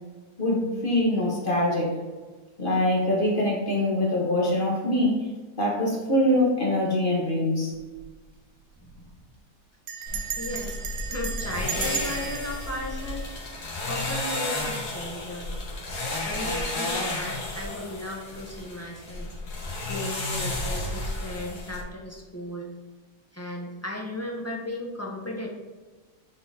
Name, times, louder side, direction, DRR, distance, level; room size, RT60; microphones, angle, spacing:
voice 1, 0.4-2.0 2.6-5.3 5.5-7.7, left 1 dB, 35° left, -3 dB, 1.4 m, -24 dB
Bell, 7.7-8.1 8.4-8.5 8.7-9.1 9.9-14.0, right 7 dB, 60° right, 0.7 m, -35 dB
voice 2, 10.0-10.8 11.1-13.3 13.9-15.5 16.2-19.3 19.6-22.7 23.3-25.5, left 1 dB, 10° left, -2 dB, 0.9 m, -36 dB
sound 1, 10.1-21.8, left 2 dB, 85° left, 2.1 m, -32 dB
9.2 x 3.9 x 4.1 m, 1.3 s
omnidirectional pair, 1.7 m